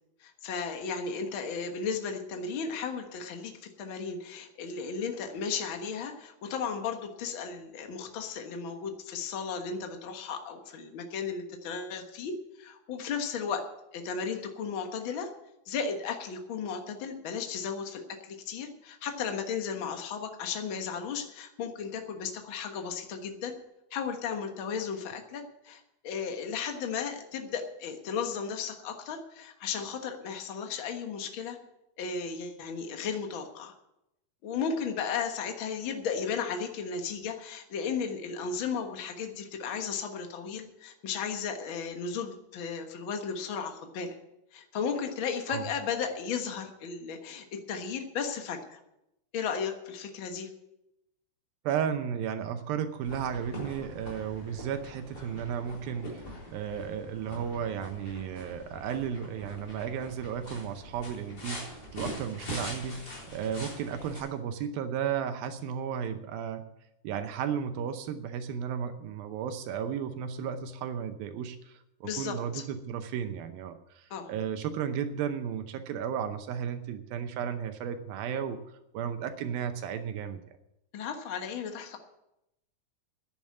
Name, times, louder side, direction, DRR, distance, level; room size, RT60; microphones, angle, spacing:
voice 1, 0.2-3.5 3.8-13.6 13.9-15.3 15.7-23.5 23.9-31.6 32.0-33.7 34.4-44.1 44.5-48.8 49.3-50.5 72.0-72.6 74.1-74.3 80.9-82.0, left 6 dB, 75° left, 5 dB, 1.1 m, -35 dB
voice 2, 51.6-56.2 56.5-66.7 67.0-78.6 78.9-80.6, right 8 dB, 75° right, 9 dB, 2.5 m, -34 dB
sound 1, 53.0-64.2, equal, 25° left, 4.3 m, -43 dB
10.5 x 9.0 x 8.9 m, 0.87 s
omnidirectional pair, 4.5 m